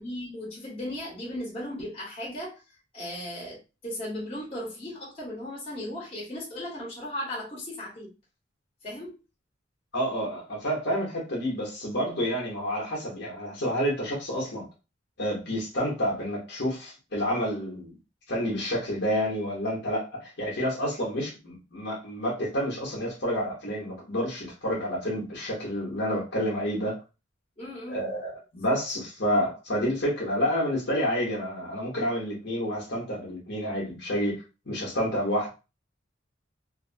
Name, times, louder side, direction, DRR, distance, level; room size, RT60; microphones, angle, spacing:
voice 1, 0.0-2.6 2.9-8.1 8.8-9.2 27.6-28.0 28.6-28.7, left 1 dB, 30° left, -4 dB, 1.2 m, -36 dB
voice 2, 9.9-14.6 15.2-17.9 18.3-27.0 27.9-35.5, equal, 60° left, -3 dB, 1.0 m, -29 dB
2.8 x 2.0 x 2.7 m, 0.29 s
head